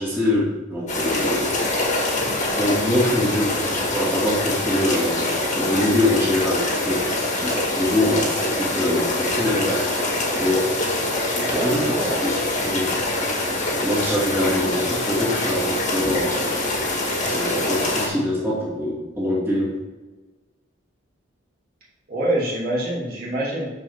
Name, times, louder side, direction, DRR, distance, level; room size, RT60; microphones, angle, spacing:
voice 1, 0.0-1.8 2.6-7.1 7.4-9.9 10.3-11.2 11.5-12.3 12.6-13.0 13.8-16.5 17.2-19.8, left 1 dB, 10° right, -8 dB, 2.3 m, -24 dB
sound 1, 0.9-18.1, left 2 dB, 35° left, 1.9 m, -24 dB
voice 2, 11.4-12.2 22.1-23.7, right 1 dB, 50° right, -6 dB, 2.5 m, -26 dB
12.0 x 4.7 x 3.6 m, 1.2 s
head